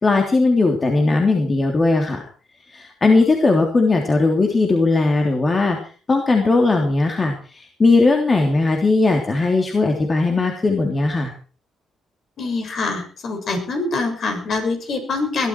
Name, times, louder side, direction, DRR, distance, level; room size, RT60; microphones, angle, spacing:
voice 1, 0.0-2.2 2.7-5.8 6.1-11.3, left 3 dB, 30° left, 2 dB, 3.2 m, -18 dB
voice 2, 12.4-15.5, left 3 dB, 55° left, 5 dB, 7.1 m, -24 dB
21.0 x 13.0 x 4.6 m, 0.38 s
cardioid pair, 90°, 0 cm